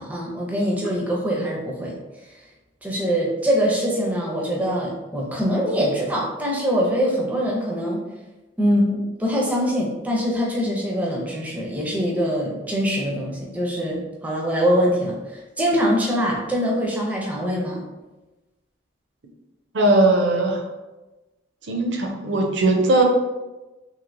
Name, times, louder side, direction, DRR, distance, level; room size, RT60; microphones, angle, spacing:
voice 1, 0.0-1.9 2.8-8.0 8.6-17.8, equal, 10° right, -3 dB, 0.5 m, -23 dB
voice 2, 19.7-20.6 21.7-23.0, right 2 dB, 75° right, 2 dB, 0.5 m, -19 dB
3.1 x 2.8 x 2.5 m, 1.1 s
head